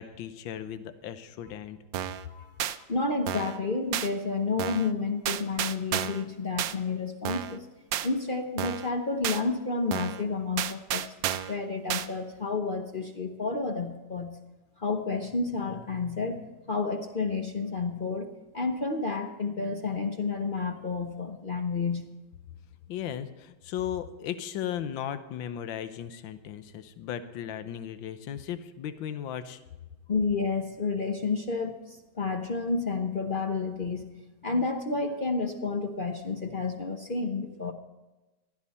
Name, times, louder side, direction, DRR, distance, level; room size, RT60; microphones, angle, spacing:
voice 1, 0.0-1.8 22.9-29.6, left 10 dB, 75° left, 11 dB, 1.6 m, -36 dB
sound 1, 1.9-2.2 2.6-2.8 3.3-3.6 3.9-4.1 4.6-4.9 5.3-6.2 6.6-6.7 7.2-7.6 7.9-8.1 8.6-8.9 9.2-9.4 9.9-10.2 10.6-11.6 11.9-12.1, right 11 dB, 75° right, 1.3 m, -31 dB
voice 2, 2.3-7.7 8.0-11.0 11.5-14.4 14.8-18.3 18.5-22.1 30.1-34.0 34.4-37.7, left 4 dB, 45° left, 4 dB, 0.7 m, -30 dB
16.5 x 12.5 x 4.2 m, 1.1 s
omnidirectional pair, 2.2 m